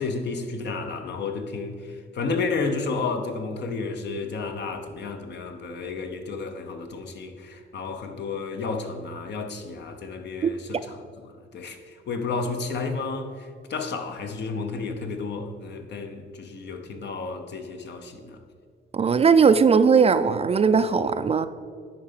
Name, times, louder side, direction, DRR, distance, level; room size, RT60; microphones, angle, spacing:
voice 1, 0.0-11.0 11.2-18.4, left 4 dB, 60° left, 6 dB, 1.0 m, -32 dB
voice 2, 18.9-21.5, right 5 dB, 30° right, 12 dB, 0.4 m, -18 dB
10.5 x 4.2 x 5.7 m, 2.1 s
cardioid pair, 90°, 20 cm